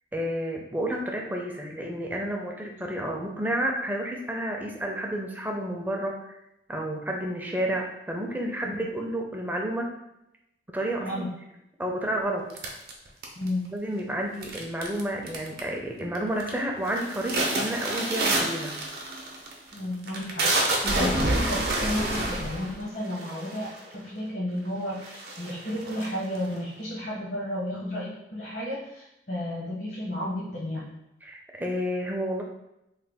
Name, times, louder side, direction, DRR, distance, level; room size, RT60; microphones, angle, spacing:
voice 1, 0.1-6.2 6.7-9.9 10.7-11.1 11.8-12.5 13.7-18.8 20.8-21.0 31.2-32.4, right 1 dB, 10° right, 0 dB, 0.4 m, -30 dB
voice 2, 11.0-11.3 13.4-13.7 19.7-31.0, left 1 dB, 70° left, -6 dB, 0.9 m, -33 dB
sound 1, 12.6-13.7 14.4-15.0 15.3-15.8 16.2-16.5 16.9-23.9 24.6-24.7 25.0-26.6, right 2 dB, 60° right, 0.6 m, -28 dB
3.2 x 2.2 x 3.4 m, 0.85 s
head